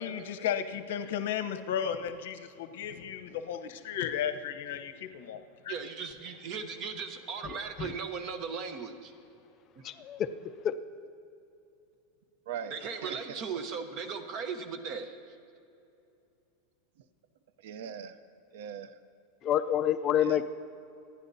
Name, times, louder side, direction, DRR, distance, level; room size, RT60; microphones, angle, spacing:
voice 1, 0.0-5.4 5.6-5.7, left 9 dB, 75° left, 8 dB, 0.9 m, -34 dB
voice 2, 5.7-9.1 12.7-15.1, right 5 dB, 35° right, 8 dB, 1.0 m, -37 dB
voice 3, 7.4-7.9 9.8-10.3 10.6-10.7 19.4-20.4, left 10 dB, 25° left, 11 dB, 0.3 m, -28 dB
voice 4, 12.5-13.4 17.6-18.2 18.5-19.0 20.2-20.4, right 8 dB, 70° right, 13 dB, 0.6 m, -41 dB
26.5 x 10.5 x 2.7 m, 2.7 s
supercardioid pair, 170°, 0 cm